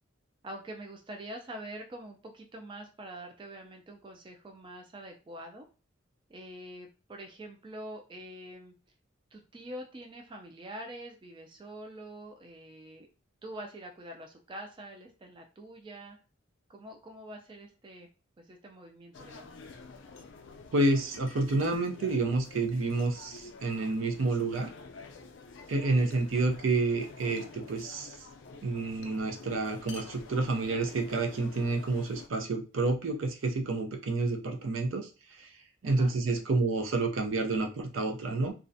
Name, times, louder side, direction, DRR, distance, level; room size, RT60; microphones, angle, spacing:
voice 1, 0.4-5.7 6.3-8.7 9.3-13.1 13.4-16.2 16.7-18.1 18.4-19.5 26.0-26.2 35.8-36.1, right 1 dB, 25° right, 3 dB, 0.3 m, -45 dB
sound 1, 19.1-32.3, left 4 dB, 65° left, 0.4 m, -49 dB
voice 2, 20.7-24.7 25.7-28.2 28.6-35.5 35.8-38.5, right 3 dB, 80° right, 2 dB, 0.5 m, -29 dB
2.4 x 2.1 x 2.6 m, 0.33 s
head